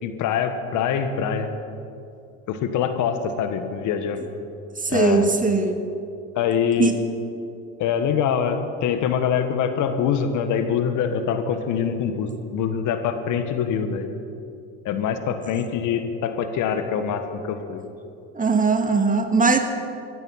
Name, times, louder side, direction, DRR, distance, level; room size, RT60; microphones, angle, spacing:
voice 1, 0.0-1.5 2.5-4.2 4.9-5.3 6.3-6.9 7.8-14.1 14.8-17.8, left 7 dB, 60° left, 8 dB, 1.5 m, -24 dB
voice 2, 4.8-5.8 6.8-7.0 18.3-19.6, right 4 dB, 25° right, 6 dB, 1.9 m, -20 dB
14.5 x 14.5 x 5.8 m, 2.6 s
hypercardioid pair, 70°, 34 cm